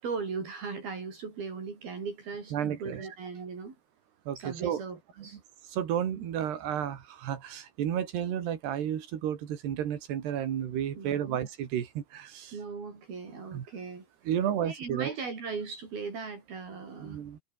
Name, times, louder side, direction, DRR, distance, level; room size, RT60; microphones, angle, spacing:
voice 1, 0.0-3.8 4.4-5.4 10.9-11.4 12.5-14.3 14.6-17.2, right 5 dB, 65° right, 7.3 m, -38 dB
voice 2, 2.5-3.1 4.3-4.8 5.7-12.5 13.5-13.7 14.3-15.1 17.0-17.4, right 10 dB, 80° right, 4.6 m, -32 dB
omnidirectional pair, 4.6 m